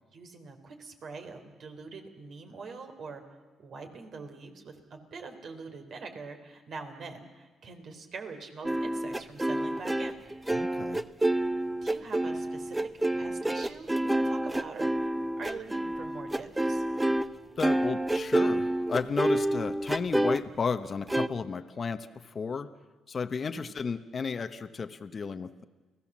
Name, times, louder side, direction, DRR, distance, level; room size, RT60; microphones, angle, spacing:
voice 1, 0.1-3.2 3.6-10.2 11.8-12.9 13.2-16.8 23.4-23.6, right 4 dB, 60° right, 5 dB, 3.7 m, -44 dB
sound 1, 8.6-17.3 17.6-20.4 21.1-21.3, right 1 dB, 10° right, 0.8 m, -28 dB
voice 2, 10.5-11.0 17.0-17.2 17.6-22.7 23.1-25.6, left 5 dB, 40° left, 8 dB, 1.0 m, -33 dB
29.5 x 17.5 x 7.4 m, 1.3 s
cardioid pair, 90°, 0 cm